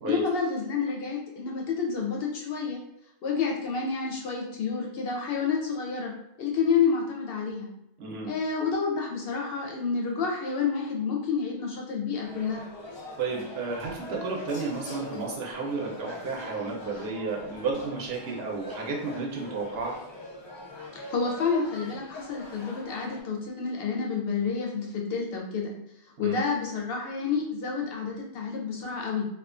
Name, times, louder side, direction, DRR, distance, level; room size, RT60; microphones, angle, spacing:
voice 1, 0.0-2.8 3.2-6.1 6.4-7.7 8.3-12.6 20.9-25.7 26.2-29.2, left 5 dB, 65° left, 0 dB, 0.7 m, -29 dB
voice 2, 8.0-8.3 13.2-19.9 26.2-26.4, right 4 dB, 70° right, -1 dB, 0.8 m, -32 dB
sound 1, 12.2-23.2, left 2 dB, 40° left, 0.4 m, -43 dB
2.4 x 2.2 x 2.4 m, 0.82 s
omnidirectional pair, 1.1 m